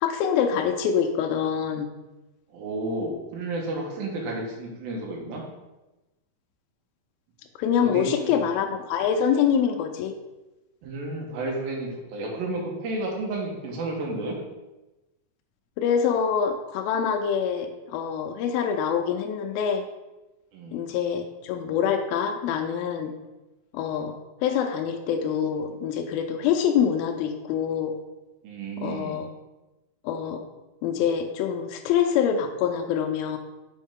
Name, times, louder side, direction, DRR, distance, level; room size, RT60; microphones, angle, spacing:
voice 1, 0.0-1.9 7.6-10.1 15.8-19.8 20.7-23.1 23.7-27.9 28.8-29.3 30.0-30.4 30.8-33.4, left 8 dB, 85° left, 4 dB, 2.4 m, -25 dB
voice 2, 2.5-5.4 7.8-8.4 10.8-14.4 20.5-20.9 28.4-29.2, right 2 dB, 80° right, 0 dB, 2.9 m, -32 dB
6.3 x 5.2 x 3.5 m, 1.0 s
omnidirectional pair, 4.3 m